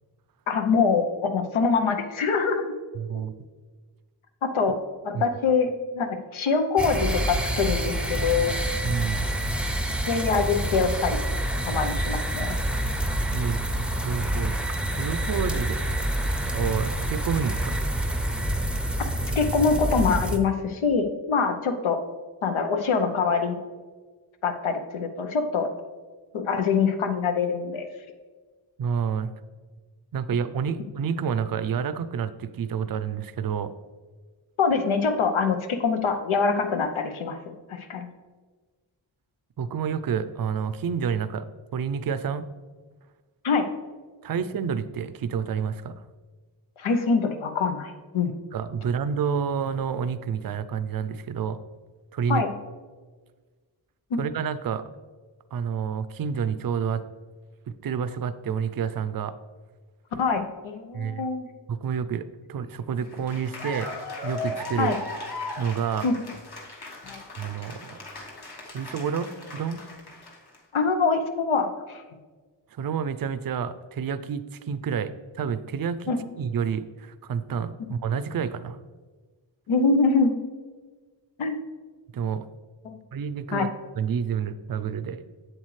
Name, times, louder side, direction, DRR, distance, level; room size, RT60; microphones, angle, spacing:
voice 1, 0.5-2.6 4.4-4.8 5.0-8.6 10.0-11.2 11.6-12.6 19.4-22.0 22.4-23.6 24.4-25.7 26.3-27.9 34.6-38.1 43.4-43.7 46.8-48.3 52.3-52.5 54.1-54.2 60.2-61.5 64.8-65.0 66.0-66.1 67.0-67.2 70.7-72.0 76.1-76.2 79.7-80.4 81.4-81.6 82.8-82.9 83.5-83.6, left 5 dB, 90° left, 6 dB, 0.9 m, -24 dB
voice 2, 2.9-3.3 5.1-5.2 8.8-9.2 13.3-14.5 15.0-15.8 16.5-17.8 28.8-29.3 30.1-33.7 39.6-41.5 41.7-42.5 44.2-46.0 48.5-51.6 52.1-52.4 54.2-54.8 55.5-57.0 57.8-59.3 60.9-61.3 61.7-63.9 64.2-64.9 65.6-66.1 67.4-68.0 68.7-69.8 72.7-78.8 82.1-82.5 83.1-83.7 84.0-85.2, right 7 dB, 50° right, 13 dB, 0.5 m, -29 dB
sound 1, 6.8-20.4, right 1 dB, ahead, 0.5 m, -27 dB
Cheering / Applause, 63.0-70.6, left 2 dB, 55° left, 1.5 m, -38 dB
8.0 x 7.4 x 3.2 m, 1.4 s
wide cardioid pair, 90°, 47 cm